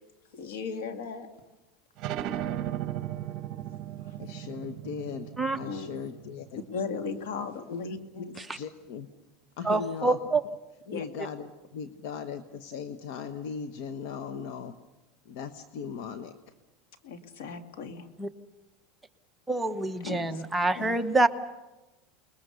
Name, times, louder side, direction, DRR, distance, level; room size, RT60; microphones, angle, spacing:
voice 1, 0.3-1.3 4.1-4.2 5.6-6.0 6.7-8.3 10.9-11.0 17.0-18.1 20.0-20.4 20.7-20.9, left 5 dB, 85° left, 2.4 m, -36 dB
sound 1, 2.0-7.3, right 11 dB, 45° right, 1.5 m, -36 dB
voice 2, 4.2-6.6 7.7-7.8 8.5-9.1 9.6-10.2 10.9-14.8 15.2-16.5, left 6 dB, 65° left, 1.2 m, -38 dB
voice 3, 9.6-10.4 18.2-18.3 19.5-21.3, right 2 dB, 5° right, 1.0 m, -26 dB
29.0 x 21.0 x 6.9 m
supercardioid pair, 145°, 0 cm